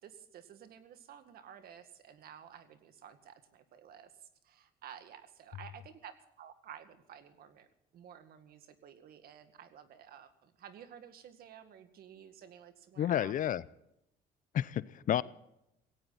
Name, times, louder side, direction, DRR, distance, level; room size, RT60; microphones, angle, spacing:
voice 1, 0.0-7.7 7.9-13.3, right 9 dB, 65° right, 10 dB, 2.0 m, -53 dB
voice 2, 13.0-13.6 14.5-15.2, left 11 dB, 50° left, 19 dB, 0.6 m, -30 dB
17.5 x 17.0 x 4.1 m, 0.83 s
cardioid pair, 110°, 17 cm